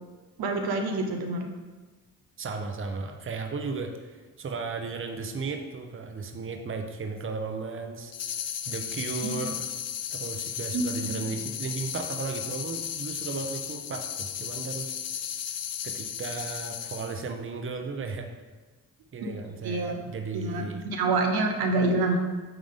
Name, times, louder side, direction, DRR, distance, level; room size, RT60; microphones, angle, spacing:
voice 1, 0.4-1.5 9.2-9.3 10.7-11.3 19.2-19.3 19.6-20.0 20.3-22.2, right 2 dB, 85° right, 3 dB, 0.9 m, -27 dB
voice 2, 2.4-8.1 8.7-9.7 10.1-14.9 15.8-18.3 19.1-20.8, right 4 dB, 35° right, 4 dB, 0.8 m, -35 dB
sound 1, 8.1-17.3, left 9 dB, 45° left, 0.5 m, -35 dB
8.8 x 3.8 x 3.7 m, 1.3 s
cardioid pair, 70°, 36 cm